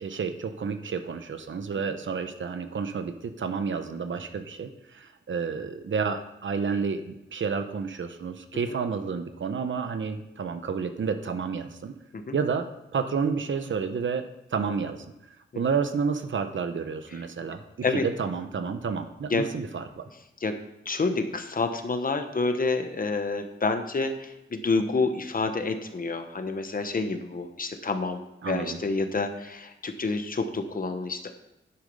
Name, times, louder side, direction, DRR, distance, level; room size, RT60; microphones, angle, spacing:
voice 1, 0.0-11.9 12.3-12.7 12.9-14.2 14.5-15.1 15.5-17.6 17.9-20.0 28.4-28.8, right 5 dB, 70° right, 8 dB, 0.9 m, -30 dB
voice 2, 20.8-31.3, left 3 dB, 45° left, 7 dB, 1.0 m, -28 dB
10.5 x 8.4 x 5.4 m, 0.94 s
wide cardioid pair, 150°, 21 cm